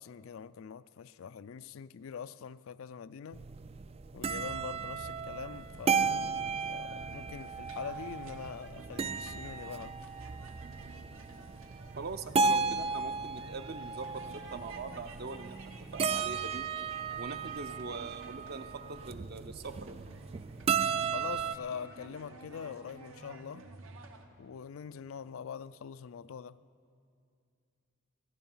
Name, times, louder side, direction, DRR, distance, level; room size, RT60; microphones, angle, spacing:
voice 1, 0.0-3.5 4.1-9.9 21.1-23.7 24.4-26.6, left 7 dB, 70° left, 0.4 m, -44 dB
sound 1, 3.3-21.6, right 5 dB, 30° right, 0.3 m, -35 dB
sound 2, 5.5-24.3, right 3 dB, 75° right, 1.2 m, -53 dB
voice 2, 11.9-15.6 15.9-16.7 17.2-20.1, right 4 dB, 50° right, 0.7 m, -42 dB
17.5 x 14.5 x 5.5 m
head